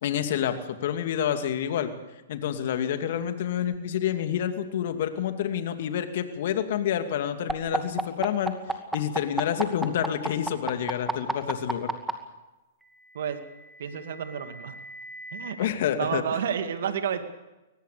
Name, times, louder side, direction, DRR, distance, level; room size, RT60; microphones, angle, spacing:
voice 1, 0.0-0.5 0.8-1.9 2.3-8.5 8.9-11.9 15.6-16.2, left 10 dB, 60° left, 8 dB, 2.5 m, -28 dB
sound 1, 7.5-12.1 13.3-15.5, right 2 dB, 5° right, 2.3 m, -31 dB
voice 2, 13.8-14.8 15.3-15.6 16.0-17.2, right 8 dB, 70° right, 8 dB, 2.3 m, -30 dB
23.5 x 18.5 x 6.8 m, 1.0 s
hypercardioid pair, 120°, 0 cm